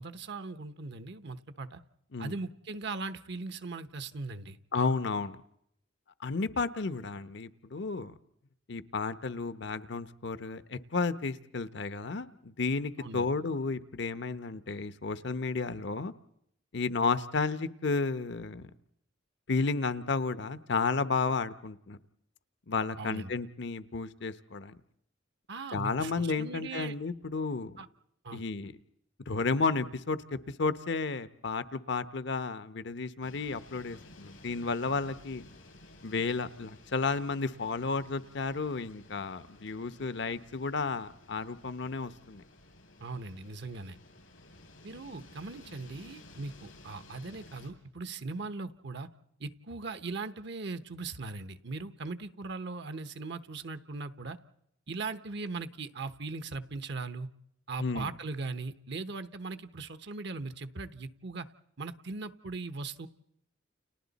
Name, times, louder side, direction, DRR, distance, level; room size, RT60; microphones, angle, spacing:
voice 1, 0.0-1.8 2.2-4.6 13.0-13.3 23.0-23.3 25.5-26.9 27.8-27.9 28.2-28.4 43.0-44.0 44.8-49.1 49.4-54.4 54.9-57.3 57.7-61.5 61.8-63.1, right 3 dB, 60° right, 11 dB, 1.0 m, -39 dB
voice 2, 4.7-5.4 6.2-8.1 8.7-16.1 16.7-18.7 19.5-22.0 22.7-24.8 25.7-27.8 28.3-28.7 29.3-35.4 36.0-42.4 57.8-58.1, left 4 dB, 60° left, 13 dB, 0.9 m, -32 dB
sound 1, 33.2-47.7, left 2 dB, 90° left, 6.7 m, -55 dB
30.0 x 30.0 x 4.1 m, 0.75 s
head